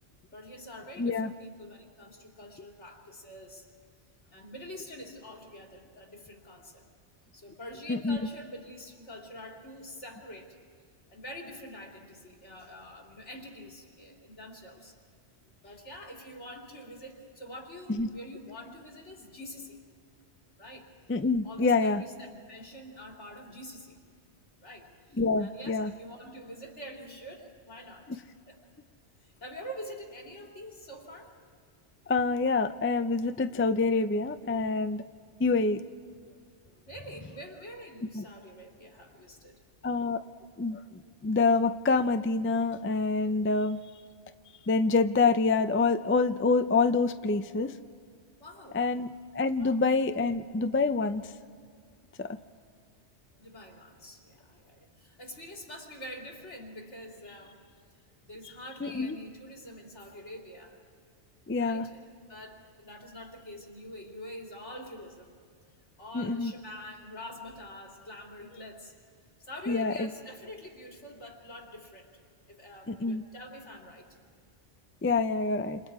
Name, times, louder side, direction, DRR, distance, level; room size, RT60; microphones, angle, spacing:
voice 1, 0.3-3.7 4.3-6.9 7.3-10.5 11.1-15.0 15.6-19.8 20.6-20.9 21.4-24.0 24.6-28.2 28.5-28.6 29.2-31.3 36.7-39.6 48.4-48.8 49.6-49.8 53.4-57.6 58.2-60.8 61.5-62.0 62.3-65.4 66.0-68.9 69.4-72.1 72.5-74.1, equal, 85° left, 0 dB, 3.5 m, -45 dB
voice 2, 1.0-1.3 7.9-8.2 17.9-18.1 21.1-22.0 25.2-25.9 32.1-35.0 35.4-35.8 38.1-38.2 39.8-40.2 40.6-40.8 41.2-43.8 44.7-47.7 48.7-51.3 52.2-52.4 58.8-59.2 61.5-61.9 66.1-66.5 69.7-70.1 72.9-73.2 75.0-75.8, left 4 dB, 20° left, 10 dB, 0.4 m, -26 dB
28.5 x 28.0 x 4.8 m, 2.1 s
omnidirectional pair, 1.2 m